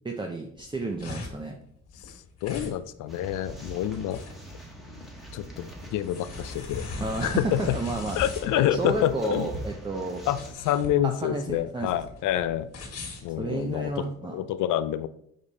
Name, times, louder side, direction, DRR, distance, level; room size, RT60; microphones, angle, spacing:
voice 1, 0.0-1.6 7.0-8.2 8.5-10.2 11.0-11.9 13.4-14.3, right 2 dB, 15° right, 3 dB, 0.7 m, -31 dB
sound 1, 0.6-14.1, left 3 dB, 55° left, 1.9 m, -40 dB
voice 2, 2.4-4.2 5.3-6.8 7.2-7.8 8.2-9.5 10.3-12.7 13.2-15.1, left 12 dB, 85° left, 13 dB, 0.5 m, -27 dB
sound 2, 3.1-10.5, right 1 dB, ahead, 1.4 m, -43 dB
5.2 x 5.1 x 4.1 m, 0.70 s
cardioid pair, 90°, 30 cm